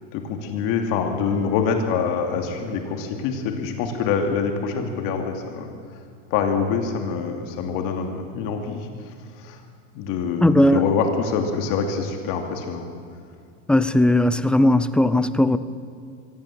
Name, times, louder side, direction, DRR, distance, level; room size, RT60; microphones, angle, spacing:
voice 1, 0.1-5.7 6.3-8.9 9.4-9.6 9.9-12.9, left 6 dB, 55° left, 4 dB, 2.7 m, -25 dB
voice 2, 10.4-10.8 13.7-15.6, left 1 dB, 5° left, 14 dB, 0.5 m, -17 dB
24.0 x 16.5 x 7.5 m, 2.3 s
supercardioid pair, 135°, 39 cm